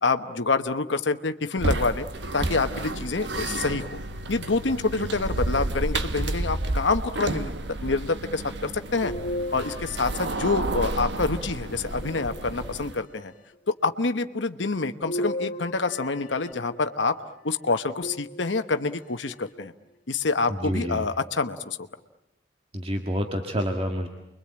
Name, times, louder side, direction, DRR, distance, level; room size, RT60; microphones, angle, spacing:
voice 1, 0.0-2.1 2.3-4.0 4.3-7.5 7.8-9.1 9.5-13.3 13.7-17.1 17.4-19.7 20.1-21.8, left 3 dB, 80° left, 8 dB, 1.1 m, -27 dB
sound 1, 1.6-13.0, right 2 dB, 70° right, 1.4 m, -31 dB
sound 2, 9.0-11.3 12.0-13.0 15.0-17.1 18.0-18.9 19.5-19.6 21.0-21.1, equal, 45° left, 1.4 m, -36 dB
voice 2, 20.5-21.0 22.7-24.1, equal, 30° right, 3 dB, 1.7 m, -28 dB
29.5 x 23.0 x 8.7 m, 0.86 s
head